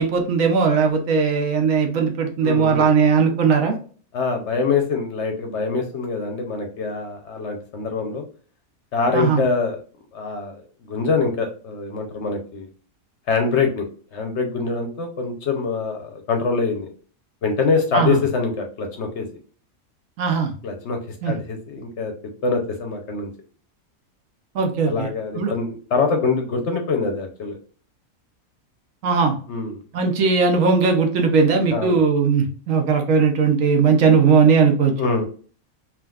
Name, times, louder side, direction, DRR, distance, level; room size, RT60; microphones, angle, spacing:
voice 1, 0.0-3.8 9.1-9.4 17.9-18.2 20.2-20.5 21.2-21.4 24.5-25.1 25.4-25.5 29.0-29.4 29.9-34.9, right 5 dB, 70° right, 4 dB, 1.1 m, -18 dB
voice 2, 2.4-2.9 4.1-8.2 8.9-9.8 10.1-12.7 13.3-16.9 17.4-19.3 20.6-22.1 22.4-23.3 24.8-27.6 29.5-29.8 31.7-32.0 35.0-35.2, left 4 dB, 60° left, 4 dB, 0.8 m, -24 dB
3.6 x 2.5 x 2.3 m, 0.42 s
omnidirectional pair, 1.5 m